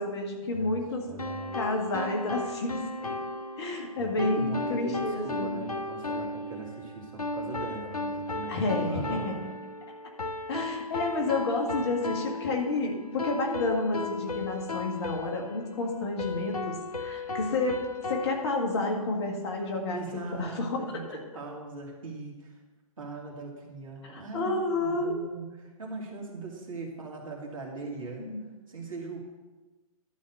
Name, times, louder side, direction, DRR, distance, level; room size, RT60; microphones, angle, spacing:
voice 1, 0.0-1.1 1.5-2.7 3.6-5.6 8.5-9.5 10.5-17.8 18.1-21.2 24.0-25.2 28.2-28.4, left 2 dB, 45° left, 2 dB, 1.9 m, -30 dB
voice 2, 0.5-1.6 4.0-9.5 19.9-21.1 21.3-22.5 23.0-28.3 28.7-29.2, right 3 dB, 65° right, -1 dB, 2.5 m, -40 dB
sound 1, 1.2-18.4, left 2 dB, 85° left, 0.7 m, -36 dB
11.5 x 4.2 x 7.8 m, 1.2 s
figure-of-eight pair, 120°, 19 cm